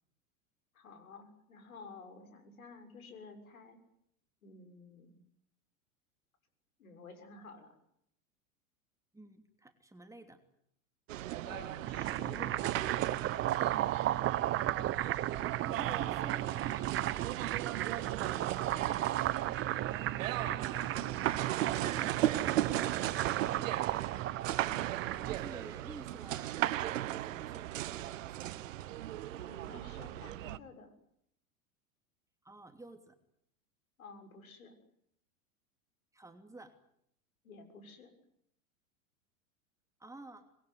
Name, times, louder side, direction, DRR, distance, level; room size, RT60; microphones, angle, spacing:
voice 1, 0.7-3.8 4.4-5.1 6.8-7.8 11.4-12.7 19.9-22.1 29.3-30.9 34.0-34.7 37.4-38.1, left 4 dB, 70° left, 7 dB, 6.8 m, -52 dB
voice 2, 9.1-10.4 15.6-17.4 17.7-19.1 24.6-26.6 26.9-28.6 32.4-33.2 36.1-36.8 40.0-40.5, right 2 dB, 5° right, 6 dB, 2.9 m, -52 dB
sound 1, 11.1-30.6, right 14 dB, 60° right, 1.2 m, -37 dB
sound 2, 11.6-25.5, right 14 dB, 30° right, 1.1 m, -35 dB
26.5 x 21.0 x 9.8 m, 0.73 s
figure-of-eight pair, 90°, 43 cm